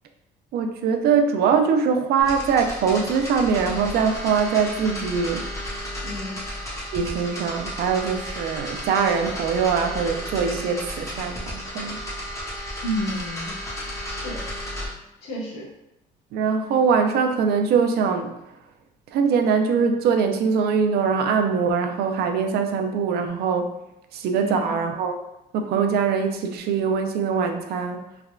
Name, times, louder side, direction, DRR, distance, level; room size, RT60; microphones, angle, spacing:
voice 1, 0.5-5.5 6.9-12.0 16.3-18.3 19.1-23.7 24.1-25.2 25.5-28.0, right 6 dB, 70° right, 5 dB, 0.4 m, -22 dB
sound 1, 2.2-14.9, equal, 20° left, 0.9 m, -33 dB
voice 2, 6.0-6.4 12.8-13.5 14.1-14.4 15.2-15.7 24.3-24.7, equal, 80° left, -5 dB, 1.1 m, -30 dB
3.4 x 2.2 x 2.3 m, 0.85 s
cardioid pair, 110°, 17 cm